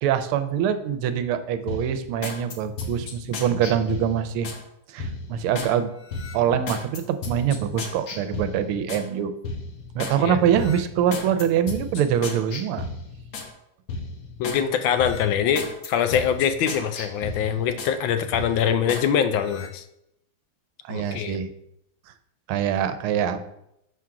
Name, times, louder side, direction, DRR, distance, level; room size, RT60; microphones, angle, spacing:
voice 1, 0.0-4.5 4.9-5.9 6.3-9.3 9.9-12.9 20.9-21.5 22.5-23.4, right 9 dB, 85° right, 10 dB, 1.5 m, -24 dB
sound 1, 1.7-4.6 5.0-5.7 6.1-9.1 9.4-10.2 10.5-13.5 13.9-14.6 15.0-18.0 18.3-19.1 19.4-19.7, left 3 dB, 55° left, 1.1 m, -34 dB
voice 2, 14.4-19.8 20.9-21.4, left 8 dB, 75° left, 10 dB, 1.3 m, -23 dB
6.1 x 3.7 x 5.7 m, 0.80 s
omnidirectional pair, 2.3 m